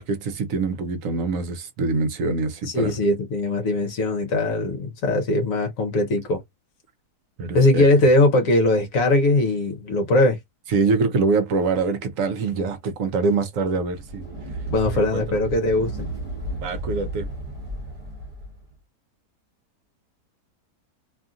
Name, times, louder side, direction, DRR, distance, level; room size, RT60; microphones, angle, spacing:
voice 1, 0.0-3.0 7.4-7.8 10.7-14.3 14.9-15.4 16.6-17.3, right 4 dB, 65° right, 0.9 m, -24 dB
voice 2, 2.7-6.4 7.5-10.4 14.7-16.1, left 2 dB, 65° left, 1.1 m, -20 dB
sound 1, 13.9-18.6, right 2 dB, 30° right, 0.8 m, -33 dB
2.7 x 2.5 x 2.4 m
omnidirectional pair, 1.7 m